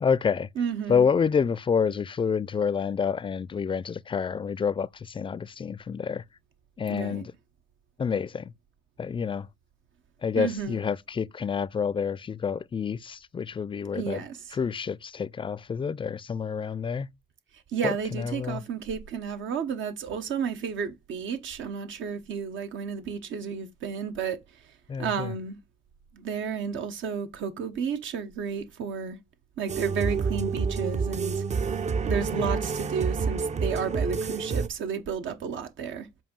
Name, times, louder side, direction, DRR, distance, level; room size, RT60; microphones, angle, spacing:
voice 1, 0.0-0.5 0.9-6.2 6.8-7.3 8.0-8.5 9.0-9.5 10.2-14.2 14.5-17.1 17.8-18.6 24.9-25.3 32.3-32.4, left 6 dB, 25° left, 0.4 m, -28 dB
voice 2, 0.6-1.0 6.9-7.3 10.3-10.8 13.9-14.6 17.7-24.7 25.0-25.6 26.1-29.2 29.6-31.4 32.0-36.1, right 6 dB, 75° right, 1.0 m, -32 dB
sound 1, 29.7-34.7, right 5 dB, 35° right, 0.5 m, -28 dB
7.4 x 2.7 x 5.3 m
cardioid pair, 90°, 20 cm